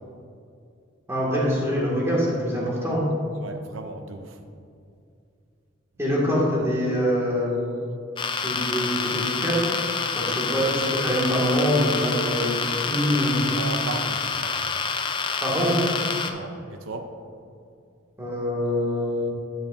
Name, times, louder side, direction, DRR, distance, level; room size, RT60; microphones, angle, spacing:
voice 1, 1.1-3.1 6.0-7.6 8.4-9.6 10.2-13.5 15.4-15.8 18.2-19.3, equal, 15° right, -6 dB, 1.8 m, -24 dB
voice 2, 3.4-4.4 13.6-14.7 16.3-17.1, right 3 dB, 75° right, 7 dB, 0.6 m, -36 dB
sound 1, 8.2-16.3, left 5 dB, 25° left, 0.4 m, -27 dB
9.9 x 7.4 x 2.6 m, 2.4 s
head